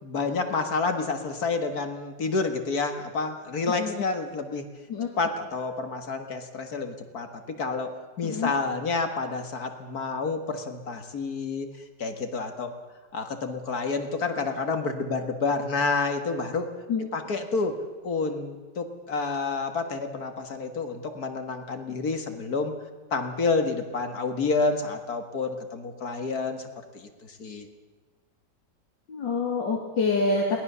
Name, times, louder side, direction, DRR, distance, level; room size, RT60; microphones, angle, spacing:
voice 1, 0.0-4.6 5.2-7.9 8.2-11.7 12.0-12.7 13.1-16.7 17.1-17.8 18.0-22.7 23.1-26.7 26.9-27.1 27.4-27.7, left 4 dB, 55° left, 6 dB, 2.1 m, -29 dB
voice 2, 8.2-8.5 16.9-17.1 29.1-30.6, left 3 dB, 85° left, -1 dB, 3.0 m, -26 dB
22.5 x 18.5 x 6.8 m, 1.4 s
omnidirectional pair, 1.9 m